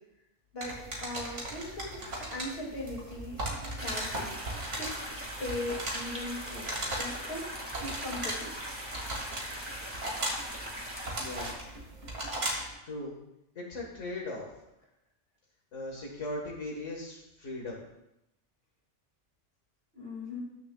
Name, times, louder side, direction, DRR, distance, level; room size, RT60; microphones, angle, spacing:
voice 1, 0.5-3.4 3.8-4.3 4.7-5.1 5.4-7.5 7.8-8.5 19.9-20.4, left 1 dB, 55° left, -2 dB, 2.5 m, -39 dB
sound 1, 0.6-12.7, right 1 dB, 80° right, 2.4 m, -38 dB
sound 2, 3.8-11.5, equal, 10° right, 1.6 m, -40 dB
voice 2, 11.2-11.6 12.9-13.1 13.6-14.5 15.7-17.8, left 2 dB, 90° left, -2 dB, 1.9 m, -38 dB
19.5 x 6.5 x 2.3 m, 0.86 s
omnidirectional pair, 1.2 m